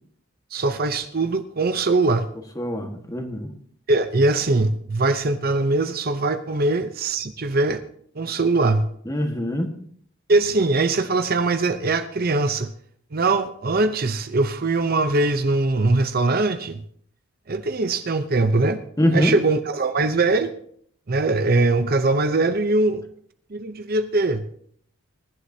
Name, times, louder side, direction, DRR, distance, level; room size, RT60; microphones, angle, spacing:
voice 1, 0.5-2.3 3.9-7.8 8.2-8.9 10.3-12.7 13.1-16.8 17.5-18.8 19.1-20.5 21.1-23.0 23.5-24.5, right 3 dB, 45° right, 10 dB, 0.7 m, -21 dB
voice 2, 2.5-3.5 9.0-9.7 19.0-19.3, equal, 15° left, 4 dB, 1.6 m, -23 dB
22.0 x 11.5 x 2.8 m, 0.62 s
head